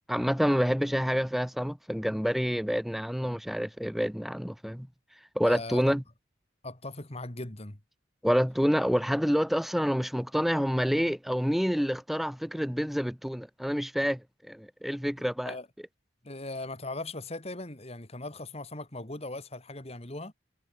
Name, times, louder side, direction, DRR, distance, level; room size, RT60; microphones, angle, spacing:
voice 1, 0.1-4.9 5.3-6.0 8.2-15.5, equal, ahead, 0.9 m, -28 dB
voice 2, 5.4-6.0 6.6-7.8 15.5-15.7 16.2-20.3, left 2 dB, 30° left, 2.1 m, -39 dB
head